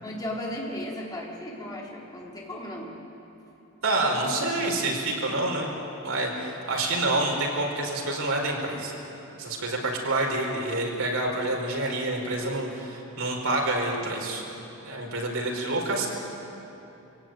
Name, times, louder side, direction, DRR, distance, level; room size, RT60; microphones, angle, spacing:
voice 1, 0.0-2.9, left 1 dB, 20° left, -4 dB, 4.1 m, -35 dB
voice 2, 3.8-5.7 6.0-8.9 9.4-14.4 14.8-16.1, right 2 dB, 80° right, 0 dB, 4.7 m, -27 dB
24.5 x 17.5 x 9.2 m, 2.9 s
head